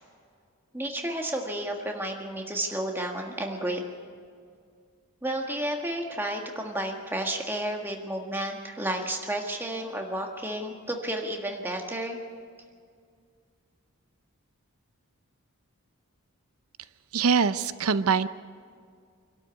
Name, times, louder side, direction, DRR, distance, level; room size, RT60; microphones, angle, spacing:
voice 1, 0.7-3.8 5.2-12.2, right 1 dB, 10° right, 2 dB, 1.6 m, -31 dB
voice 2, 17.1-18.3, right 5 dB, 90° right, 14 dB, 0.6 m, -23 dB
25.5 x 12.5 x 8.3 m, 2.1 s
head